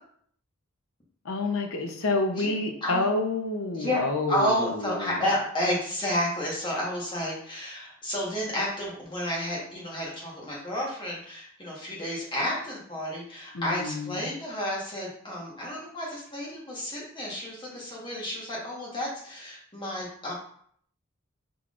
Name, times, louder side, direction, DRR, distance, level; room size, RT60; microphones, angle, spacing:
voice 1, 1.2-5.2 13.5-14.3, left 2 dB, 75° left, 4 dB, 0.7 m, -29 dB
voice 2, 4.3-20.3, left 1 dB, 20° left, -4 dB, 1.3 m, -31 dB
4.4 x 3.8 x 2.5 m, 0.62 s
head